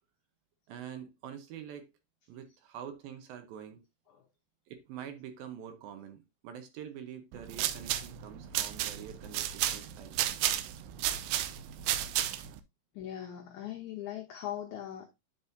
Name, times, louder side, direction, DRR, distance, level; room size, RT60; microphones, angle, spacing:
voice 1, 0.7-1.9 2.3-3.8 4.7-10.5, right 9 dB, 75° right, 2.5 m, -46 dB
sound 1, 7.3-12.6, right 12 dB, 90° right, 2.7 m, -33 dB
voice 2, 12.9-15.2, left 11 dB, 85° left, 1.6 m, -40 dB
9.9 x 5.4 x 2.6 m
omnidirectional pair, 4.6 m